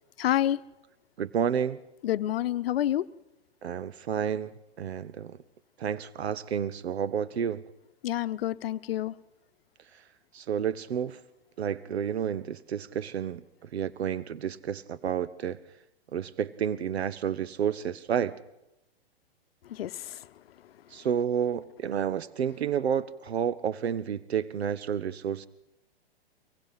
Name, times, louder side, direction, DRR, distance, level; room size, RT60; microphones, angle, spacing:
voice 1, 0.2-0.6 2.0-3.1 8.0-9.1 19.6-20.3, left 12 dB, 65° left, 0.9 m, -28 dB
voice 2, 1.2-1.8 3.6-5.4 5.8-7.6 9.9-10.0 10.3-11.2 11.6-13.4 13.7-15.6 16.1-18.3 20.9-25.5, right 8 dB, 85° right, 0.8 m, -30 dB
24.5 x 19.0 x 5.7 m
hypercardioid pair, 120°, 31 cm